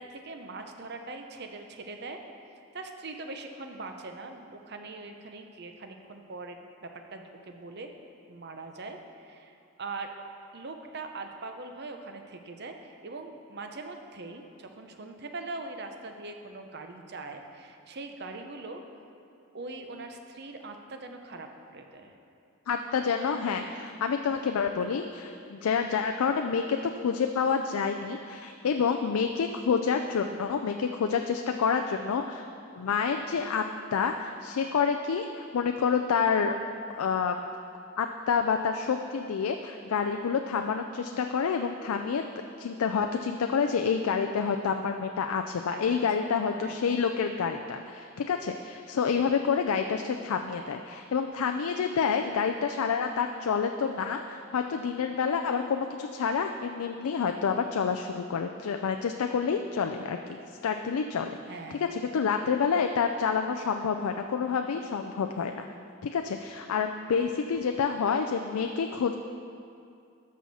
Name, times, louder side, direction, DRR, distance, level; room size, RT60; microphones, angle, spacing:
voice 1, 0.0-2.2 2.7-7.9 8.3-10.1 10.5-18.8 19.5-22.1 45.5-46.0 46.4-46.8 61.5-62.0, right 3 dB, 50° right, 5 dB, 0.7 m, -42 dB
voice 2, 22.7-32.5 32.7-33.6 33.9-36.6 37.0-37.4 38.0-42.2 42.6-61.4 61.7-65.6 66.0-69.1, left 6 dB, 85° left, 5 dB, 0.4 m, -28 dB
12.5 x 6.3 x 4.2 m, 2.5 s
head